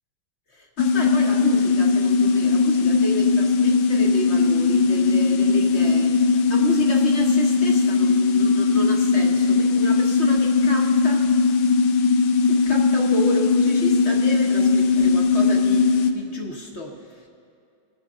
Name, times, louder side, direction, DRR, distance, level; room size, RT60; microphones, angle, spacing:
voice 1, 0.5-11.3 12.5-17.3, left 1 dB, 40° left, 0 dB, 1.2 m, -31 dB
sound 1, 0.8-16.1, left 4 dB, 70° left, 1.4 m, -19 dB
25.0 x 9.3 x 3.7 m, 2.5 s
omnidirectional pair, 2.4 m